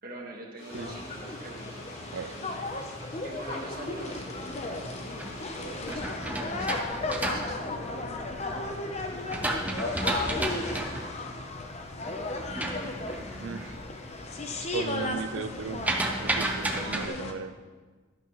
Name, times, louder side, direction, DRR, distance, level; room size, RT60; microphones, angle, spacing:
voice 1, 0.0-1.8 3.2-4.9 5.5-8.0, right 1 dB, 45° right, -1 dB, 1.5 m, -44 dB
sound 1, 0.6-5.9, equal, 70° left, 3.9 m, -47 dB
sound 2, 0.7-17.3, left 2 dB, 30° left, 0.8 m, -35 dB
sound 3, 4.7-8.5 9.0-13.8 14.1-14.6 14.8-17.1, right 1 dB, 5° right, 0.7 m, -33 dB
voice 2, 13.4-13.8 14.6-15.8 16.2-17.6, right 5 dB, 65° right, 11 dB, 0.5 m, -36 dB
11.5 x 11.5 x 3.1 m, 1.4 s
head